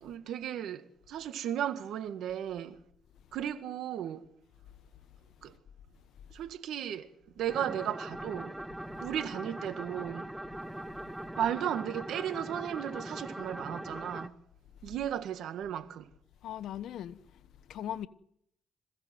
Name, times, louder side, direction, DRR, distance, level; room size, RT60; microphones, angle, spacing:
voice 1, 0.0-2.8 3.3-4.2 5.4-5.5 6.3-7.1 7.4-8.6 9.0-10.3 11.4-14.3 14.8-16.1, right 10 dB, 80° right, 1.8 m, -35 dB
sound 1, 7.5-14.3, right 1 dB, 5° right, 0.9 m, -41 dB
voice 2, 16.4-17.4 17.7-18.1, left 10 dB, 80° left, 1.1 m, -39 dB
26.5 x 16.5 x 7.8 m
cardioid pair, 90°, 0 cm